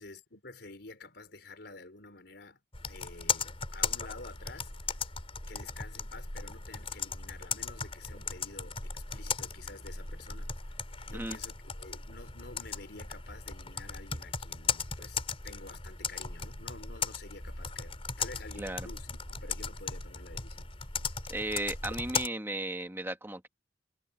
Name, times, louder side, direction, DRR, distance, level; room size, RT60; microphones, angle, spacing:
voice 1, 0.0-2.6 2.9-4.7 5.5-10.5 11.1-20.7, left 3 dB, 65° left, 5.0 m, -49 dB
Computer keyboard, 2.7-22.3, left 5 dB, 30° left, 4.2 m, -37 dB
voice 2, 21.3-23.5, right 2 dB, 15° right, 1.6 m, -35 dB
head